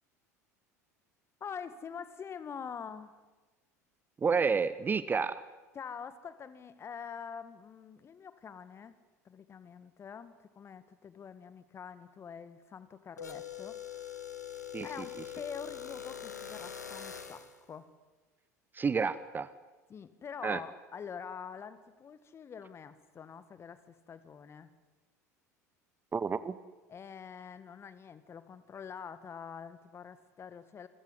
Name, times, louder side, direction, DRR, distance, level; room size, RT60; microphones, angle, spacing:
voice 1, 1.4-3.2 5.7-8.9 9.3-14.3 14.8-17.9 19.9-24.7 26.9-30.9, left 7 dB, 30° left, 14 dB, 1.9 m, -45 dB
voice 2, 4.2-5.4 14.7-15.1 18.7-19.5 20.4-20.6 26.1-26.5, right 5 dB, 20° right, 15 dB, 0.9 m, -30 dB
sound 1, 13.2-17.6, left 9 dB, 80° left, 1.8 m, -43 dB
25.5 x 16.0 x 9.9 m, 1.2 s
figure-of-eight pair, 70°, 9 cm